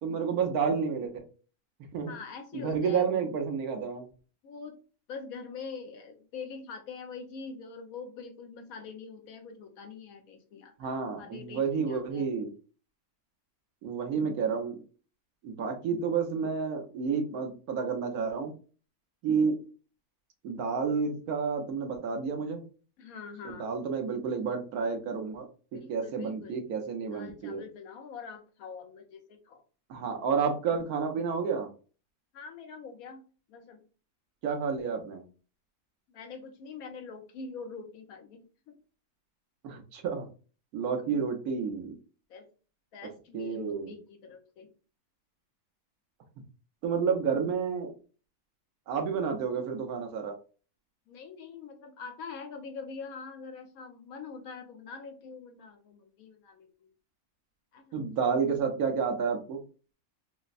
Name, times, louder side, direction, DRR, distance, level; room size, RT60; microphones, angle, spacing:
voice 1, 0.0-1.1 1.9-2.1 2.5-4.1 10.8-12.5 13.8-14.8 15.4-18.5 19.2-19.6 20.4-22.6 23.4-27.6 29.9-31.7 34.4-35.2 39.6-40.3 40.7-42.0 43.3-43.9 46.8-47.9 48.9-50.3 57.9-59.6, right 6 dB, 75° right, 4 dB, 1.2 m, -30 dB
voice 2, 2.1-3.3 4.4-4.8 5.1-12.3 23.0-23.7 25.7-26.6 27.1-29.6 32.3-33.2 33.5-33.8 36.1-38.8 42.3-42.5 42.9-44.7 51.1-56.9 57.7-58.0, left 5 dB, 70° left, 5 dB, 1.1 m, -44 dB
4.3 x 2.0 x 2.4 m, 0.36 s
omnidirectional pair, 1.6 m